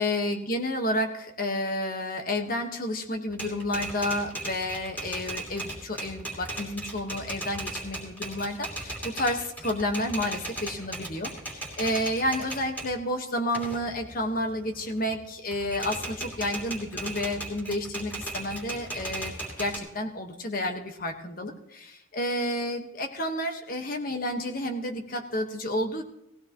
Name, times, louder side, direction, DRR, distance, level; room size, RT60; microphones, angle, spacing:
voice 1, 0.0-26.0, left 1 dB, 45° left, 4 dB, 1.5 m, -30 dB
Typewriter, 3.3-12.9 13.4-15.2 15.5-19.8, right 1 dB, 10° left, 2.9 m, -37 dB
18.5 x 16.5 x 3.1 m, 0.80 s
head